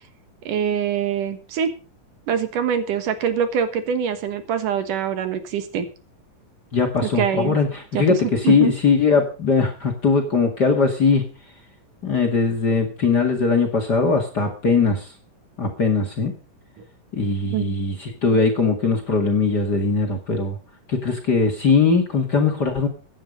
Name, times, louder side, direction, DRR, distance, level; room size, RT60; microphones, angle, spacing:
voice 1, 0.5-1.7 2.3-5.9 7.0-7.6 7.9-8.0 8.4-8.7 17.5-17.7, right 8 dB, 70° right, 10 dB, 3.0 m, -24 dB
voice 2, 6.7-11.2 12.0-15.1 15.6-16.3 17.1-20.6 20.9-22.9, left 4 dB, 35° left, 3 dB, 2.1 m, -20 dB
15.5 x 10.5 x 5.1 m, 0.36 s
omnidirectional pair, 3.9 m